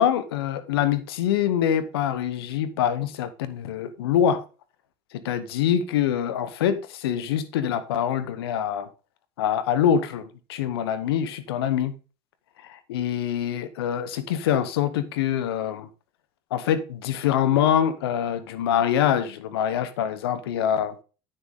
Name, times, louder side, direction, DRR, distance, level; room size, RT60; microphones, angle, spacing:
voice 1, 0.0-4.4 5.1-8.9 9.4-11.9 12.6-15.9 16.5-21.0, left 9 dB, 85° left, 1.0 m, -24 dB
9.6 x 6.5 x 3.6 m
hypercardioid pair, 70°, 13 cm